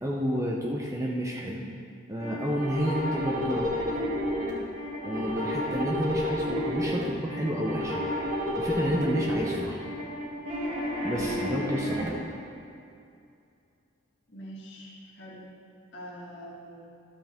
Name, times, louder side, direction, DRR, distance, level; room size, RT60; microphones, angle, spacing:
voice 1, 0.0-1.6 2.1-3.7 5.0-8.0 8.6-9.8 11.0-12.1, equal, 15° right, -2 dB, 0.7 m, -30 dB
sound 1, 2.2-12.1, equal, 40° right, 2.0 m, -31 dB
voice 2, 14.3-15.5 15.9-16.9, equal, 60° left, -5 dB, 1.9 m, -44 dB
13.0 x 7.7 x 3.6 m, 2.5 s
head